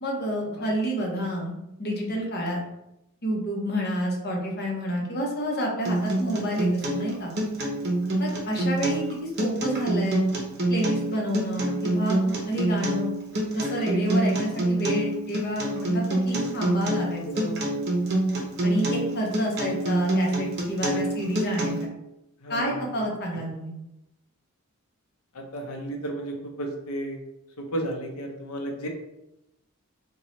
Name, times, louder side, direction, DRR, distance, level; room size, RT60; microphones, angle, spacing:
voice 1, 0.0-1.5 1.8-2.6 3.2-7.3 8.2-10.2 10.7-13.1 13.5-17.6 18.6-21.9 22.5-23.7, equal, 50° left, -1 dB, 0.8 m, -29 dB
Acoustic guitar, 5.8-21.9, right 1 dB, 50° right, 0.7 m, -26 dB
voice 2, 22.4-22.8 25.3-27.2 27.6-28.9, right 1 dB, 85° left, 2 dB, 0.7 m, -33 dB
3.1 x 2.3 x 3.9 m, 0.87 s
head